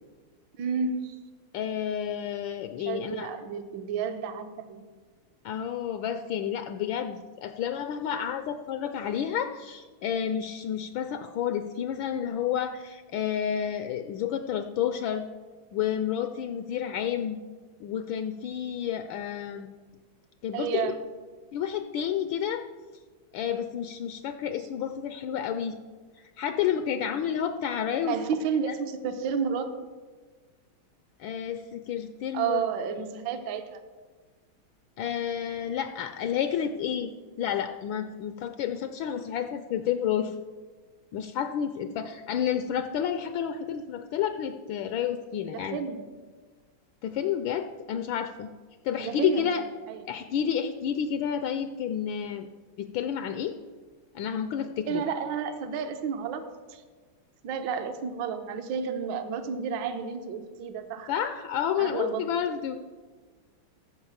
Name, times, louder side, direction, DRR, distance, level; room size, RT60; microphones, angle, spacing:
voice 1, 0.6-1.2 2.8-4.8 20.5-21.0 28.1-29.7 32.3-33.8 45.5-46.1 49.0-49.5 49.9-50.0 50.4-50.5 54.9-56.4 56.7-56.8 57.4-61.1 61.8-62.2, right 6 dB, 65° right, 8 dB, 1.4 m, -31 dB
voice 2, 1.5-3.3 5.4-15.3 15.7-17.4 17.8-19.7 20.4-20.9 21.5-22.6 23.3-25.8 26.2-28.2 28.7-28.8 31.2-32.6 35.0-37.1 37.4-40.4 41.1-45.8 47.0-48.5 48.8-49.6 50.0-52.5 52.8-53.6 54.1-55.0 61.1-62.8, left 9 dB, 75° left, 8 dB, 1.3 m, -30 dB
14.5 x 4.9 x 7.2 m, 1.4 s
omnidirectional pair, 2.3 m